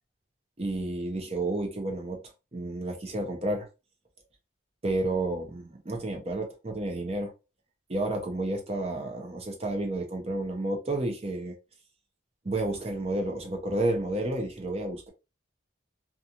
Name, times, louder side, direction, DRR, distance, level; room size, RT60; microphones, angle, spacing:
voice 1, 0.6-2.2 2.5-3.7 4.8-7.3 7.9-11.5 12.4-15.1, right 2 dB, 30° right, 0.6 m, -31 dB
2.8 x 2.4 x 2.4 m
head